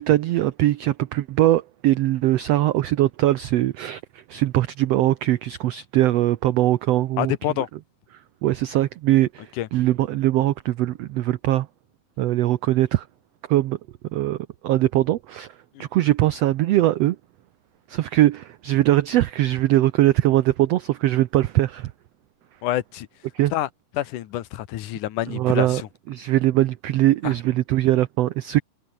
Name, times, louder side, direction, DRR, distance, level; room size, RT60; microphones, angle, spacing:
voice 1, 0.0-4.0 4.3-7.3 8.4-11.7 12.2-13.0 13.5-13.8 14.1-14.4 14.6-15.5 15.8-17.2 17.9-21.9 23.3-23.5 25.3-25.8 26.1-28.6, right 15 dB, 75° right, 1.5 m, -21 dB
voice 2, 7.2-7.7 9.6-9.7 15.8-15.9 22.6-23.1 23.5-23.7 23.9-25.9 27.2-27.3, left 13 dB, 75° left, 2.6 m, -27 dB
omnidirectional pair, 3.7 m